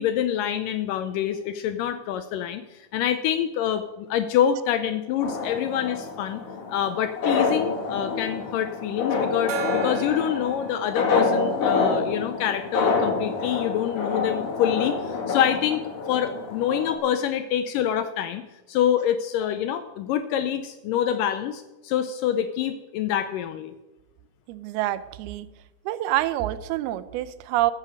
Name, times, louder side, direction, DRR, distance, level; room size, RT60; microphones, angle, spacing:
voice 1, 0.0-6.4 6.7-15.8 16.1-18.4 18.7-23.7, left 10 dB, 80° left, 10 dB, 1.9 m, -26 dB
sound 1, 5.2-16.9, left 4 dB, 45° left, 2.6 m, -27 dB
Gong, 9.5-12.7, right 7 dB, 65° right, 2.5 m, -37 dB
voice 2, 24.5-25.5 25.9-27.7, right 14 dB, 85° right, 15 dB, 2.6 m, -26 dB
14.5 x 7.4 x 6.5 m, 1.0 s
omnidirectional pair, 4.5 m